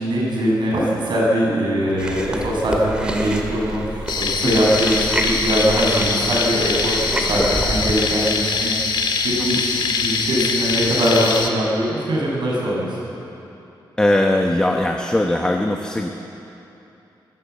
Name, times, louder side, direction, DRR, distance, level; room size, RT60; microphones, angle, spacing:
voice 1, 0.0-13.1, equal, 70° right, -3 dB, 7.2 m, -22 dB
Chewing mastication, 2.0-8.0, right 1 dB, 10° right, 2.0 m, -28 dB
sound 1, 4.1-11.5, left 4 dB, 70° left, 1.9 m, -23 dB
voice 2, 14.0-16.1, left 1 dB, 10° left, 2 dB, 1.0 m, -20 dB
25.0 x 15.5 x 8.4 m, 2.9 s
wide cardioid pair, 170°, 8 cm